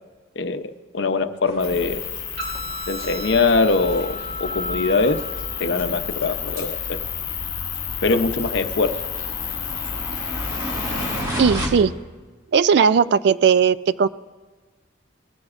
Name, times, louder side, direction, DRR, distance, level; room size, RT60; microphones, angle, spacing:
voice 1, 0.4-2.0 2.9-5.2 5.6-7.0 8.0-9.0, left 3 dB, 60° left, 9 dB, 0.7 m, -22 dB
sound 1, 1.5-11.7, equal, 20° right, 2.0 m, -35 dB
sound 2, 1.6-11.2, left 7 dB, 45° left, 1.4 m, -31 dB
sound 3, 2.4-10.4, left 2 dB, 85° right, 3.1 m, -37 dB
voice 2, 11.4-11.9 12.5-14.1, right 6 dB, 55° right, 16 dB, 0.3 m, -17 dB
20.0 x 14.5 x 2.5 m, 1.3 s
head